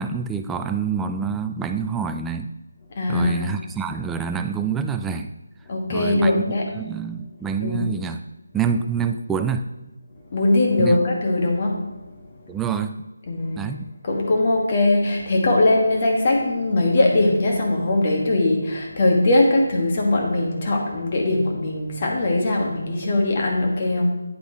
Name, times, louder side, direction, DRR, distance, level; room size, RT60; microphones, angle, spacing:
voice 1, 0.0-2.5 3.1-5.3 5.9-6.4 6.7-8.2 8.5-9.7 10.8-11.0 12.5-13.0 13.6-13.9, right 6 dB, 5° right, 7 dB, 0.3 m, -26 dB
voice 2, 2.9-3.5 5.7-6.7 7.6-7.8 10.3-11.9 13.3-13.8 14.0-24.1, left 2 dB, 35° left, 0 dB, 1.5 m, -20 dB
8.9 x 8.2 x 3.0 m, 1.0 s
figure-of-eight pair, 160°, 0 cm